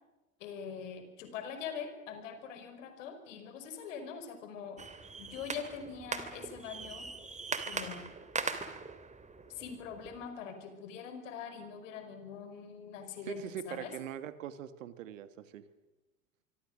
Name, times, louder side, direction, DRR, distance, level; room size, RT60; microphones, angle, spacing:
voice 1, 0.4-4.8 5.2-7.1 7.7-8.1 9.5-13.9, left 7 dB, 65° left, 8 dB, 5.3 m, -43 dB
sound 1, 4.8-10.2, right 4 dB, 15° right, 3.1 m, -40 dB
voice 2, 13.3-15.6, right 9 dB, 65° right, 13 dB, 2.0 m, -42 dB
26.0 x 24.5 x 6.5 m, 1.0 s
figure-of-eight pair, 80°, 41 cm